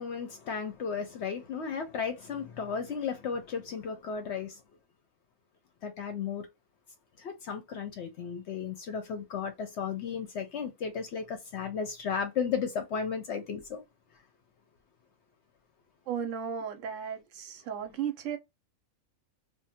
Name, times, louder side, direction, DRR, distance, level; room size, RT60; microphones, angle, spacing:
voice 1, 0.0-4.6 5.8-6.5 7.2-13.8, left 6 dB, 65° left, 0.8 m, -34 dB
voice 2, 16.1-18.4, right 8 dB, 70° right, 0.9 m, -35 dB
2.6 x 2.1 x 2.7 m
omnidirectional pair, 1.5 m